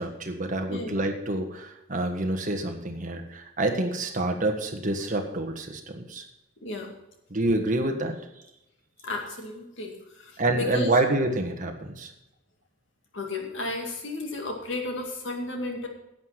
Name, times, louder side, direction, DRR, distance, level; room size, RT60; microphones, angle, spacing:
voice 1, 0.0-6.2 7.3-8.3 10.4-12.1, right 2 dB, 35° right, 3 dB, 1.5 m, -27 dB
voice 2, 9.0-10.9 13.1-15.9, left 2 dB, 60° left, 2 dB, 2.3 m, -33 dB
11.0 x 8.0 x 5.8 m, 0.88 s
head